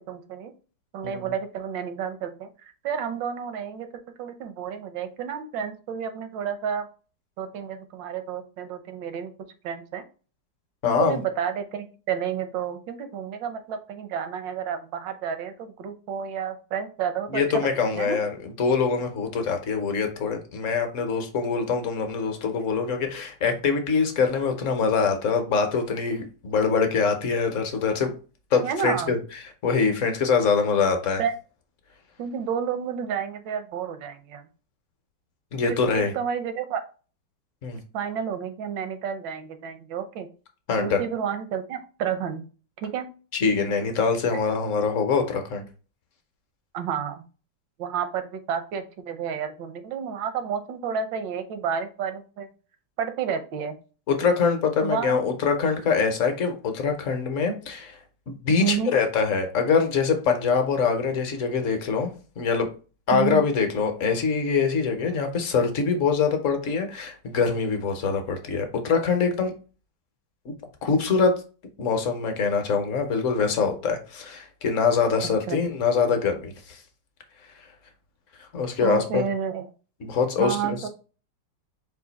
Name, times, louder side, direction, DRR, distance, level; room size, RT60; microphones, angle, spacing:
voice 1, 0.1-0.5 0.9-3.9 4.2-6.9 7.4-9.3 9.6-10.0 10.8-17.7 17.9-18.2 28.6-29.2 31.2-31.3 32.2-34.5 35.6-36.8 37.9-40.3 40.8-42.4 42.8-43.1 46.7-47.2 47.8-52.5 53.0-53.8 54.8-55.2 58.6-58.9 63.1-63.4 75.5-75.6 78.8-79.7 80.4-80.9, right 7 dB, 80° right, 9 dB, 1.4 m, -30 dB
voice 2, 10.8-11.2 17.3-28.1 28.5-29.2 29.6-31.2 35.5-36.1 37.6-37.8 40.7-41.0 43.3-45.6 54.1-58.0 58.3-62.1 62.4-62.7 63.1-69.5 70.5-70.6 70.8-71.3 71.8-76.8 78.5-79.2 80.0-80.9, left 5 dB, 55° left, 5 dB, 0.9 m, -24 dB
4.9 x 2.6 x 3.9 m, 0.36 s
omnidirectional pair, 2.0 m